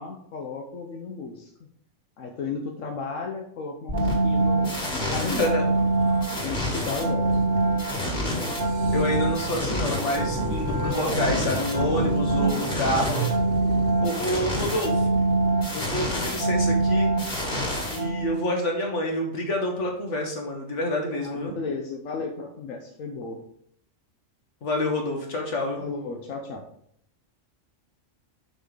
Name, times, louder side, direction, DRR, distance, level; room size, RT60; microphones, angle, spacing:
voice 1, 0.0-1.7 2.2-5.5 6.4-7.4 16.2-16.4 21.2-23.4 25.8-26.7, left 4 dB, 90° left, 2 dB, 1.2 m, -34 dB
sound 1, 3.9-18.5, right 2 dB, 35° left, 2.1 m, -25 dB
sound 2, 5.0-7.1 8.2-14.6 15.5-15.8, right 6 dB, 85° right, 1.3 m, -37 dB
voice 2, 5.2-5.7 8.9-13.3 14.0-15.1 15.7-17.1 17.8-21.5 24.6-25.8, left 1 dB, 65° left, 2 dB, 1.8 m, -28 dB
5.9 x 5.3 x 4.8 m, 0.70 s
omnidirectional pair, 1.3 m